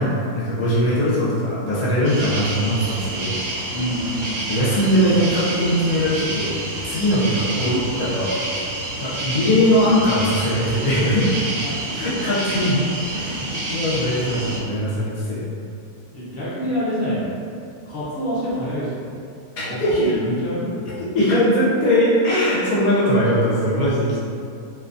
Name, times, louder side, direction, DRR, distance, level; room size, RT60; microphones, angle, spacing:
voice 1, 0.0-3.4 4.5-6.6 6.8-8.4 9.0-11.5 11.9-12.8 13.1-15.5 19.6-20.1 21.1-24.2, equal, 75° left, -8 dB, 1.0 m, -20 dB
sound 1, 2.0-14.6, right 2 dB, 75° right, 1.0 m, -29 dB
voice 2, 3.7-4.3 13.3-13.9 16.1-17.3 17.9-19.2 19.5-21.1, equal, 45° left, -9 dB, 0.8 m, -27 dB
2.7 x 2.2 x 2.4 m, 2.4 s
omnidirectional pair, 1.6 m